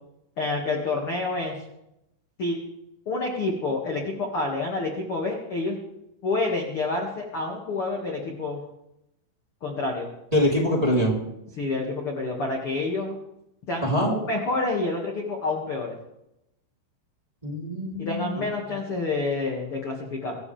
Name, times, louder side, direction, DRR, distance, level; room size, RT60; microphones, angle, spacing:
voice 1, 0.4-1.6 2.4-2.6 3.1-5.8 6.2-8.6 9.6-10.1 11.6-13.2 13.7-16.0 18.0-20.4, left 3 dB, 45° left, 0 dB, 2.0 m, -28 dB
voice 2, 10.3-11.1 13.8-14.1 17.4-18.4, equal, 10° right, -3 dB, 3.0 m, -24 dB
25.0 x 13.5 x 3.5 m, 0.85 s
omnidirectional pair, 5.6 m